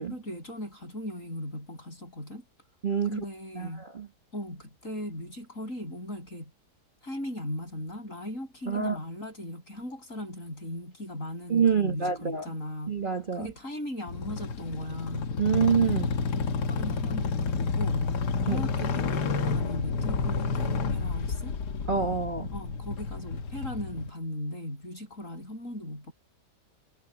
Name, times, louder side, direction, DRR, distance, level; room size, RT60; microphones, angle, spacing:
voice 1, 0.1-2.4 3.0-3.9 4.3-6.5 7.0-13.0 13.3-15.4 16.3-18.1 18.4-21.5 22.5-26.1, left 1 dB, 45° left, 8.5 m, -38 dB
voice 2, 2.8-3.2 3.6-4.1 8.7-9.0 11.5-12.5 12.9-13.5 15.4-16.1 18.5-18.6 21.9-22.5, right 6 dB, 30° right, 1.6 m, -26 dB
sound 1, 14.1-24.1, left 4 dB, 70° left, 1.7 m, -30 dB
omnidirectional pair, 1.8 m